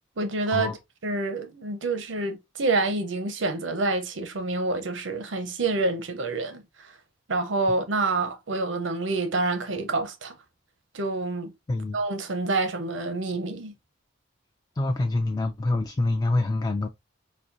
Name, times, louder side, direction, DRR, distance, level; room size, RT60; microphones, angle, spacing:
voice 1, 0.2-0.7 1.0-6.9 7.3-10.3 10.9-11.5 11.9-13.7, right 3 dB, 85° right, 0.8 m, -27 dB
voice 2, 11.7-12.0 14.8-16.9, left 2 dB, 20° left, 0.3 m, -26 dB
4.2 x 2.6 x 2.5 m
head